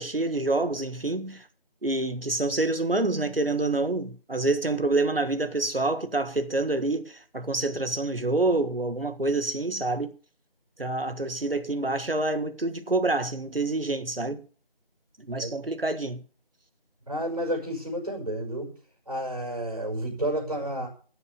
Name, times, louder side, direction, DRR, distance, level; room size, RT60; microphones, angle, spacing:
voice 1, 0.0-1.4 1.8-10.1 10.8-14.4 15.2-16.2, right 2 dB, 70° right, 1.7 m, -27 dB
voice 2, 17.1-18.7 19.1-20.9, right 1 dB, 40° right, 6.3 m, -30 dB
14.0 x 7.0 x 6.8 m
figure-of-eight pair, 180°, 30 cm